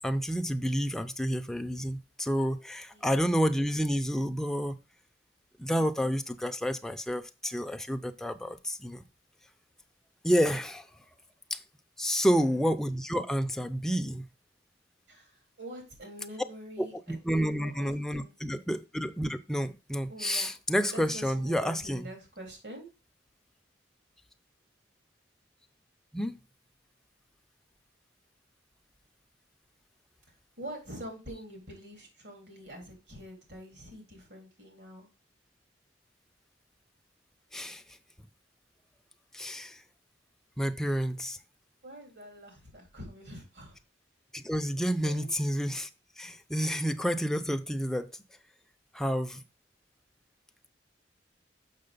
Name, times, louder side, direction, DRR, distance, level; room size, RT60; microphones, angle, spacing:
voice 1, 0.0-4.8 5.6-9.0 10.2-10.9 11.5-11.6 12.0-14.3 17.1-22.1 26.1-26.4 37.5-37.8 39.3-39.8 40.6-41.4 44.3-45.9 46.2-48.1 48.9-49.4, equal, 5° left, 0.5 m, -29 dB
voice 2, 2.9-3.4 12.3-12.7 15.1-18.3 20.1-20.6 20.9-22.9 30.6-35.1 41.8-43.8 45.0-45.3, right 1 dB, 75° right, 3.5 m, -45 dB
6.7 x 6.0 x 3.8 m
head